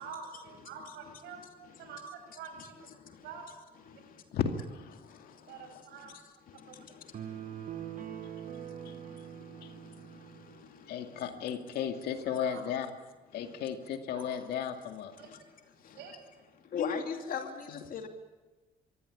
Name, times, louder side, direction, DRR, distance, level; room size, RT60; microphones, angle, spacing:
voice 1, 0.0-2.0 2.3-2.7 3.2-3.5 5.5-6.1 6.7-6.8 12.4-12.6 14.1-14.2 15.2-15.3 15.9-16.1, right 6 dB, 85° right, 5 dB, 6.7 m, -46 dB
voice 2, 1.3-1.9 2.6-3.3 3.8-4.2 5.0-11.4 13.3-13.6 15.2-15.4 15.7-16.1 16.7-18.1, left 6 dB, 55° left, 5 dB, 2.8 m, -43 dB
voice 3, 4.3-5.8 8.8-9.0 9.6-9.7 10.9-12.9 13.3-15.2 17.7-17.8, left 8 dB, 70° left, 6 dB, 2.3 m, -35 dB
sound 1, 7.1-10.7, right 10 dB, 50° right, 1.7 m, -43 dB
23.0 x 16.5 x 10.0 m, 1.2 s
cardioid pair, 110°, 17 cm